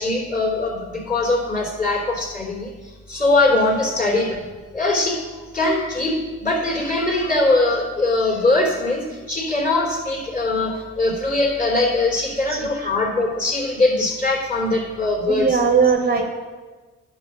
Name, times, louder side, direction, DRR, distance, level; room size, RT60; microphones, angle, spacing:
voice 1, 0.0-4.4 4.7-15.6, left 2 dB, 25° left, 0 dB, 3.7 m, -21 dB
voice 2, 12.5-12.9 15.3-16.3, right 5 dB, 30° right, 4 dB, 1.1 m, -19 dB
9.8 x 7.2 x 6.3 m, 1.3 s
cardioid pair, 90°, 30 cm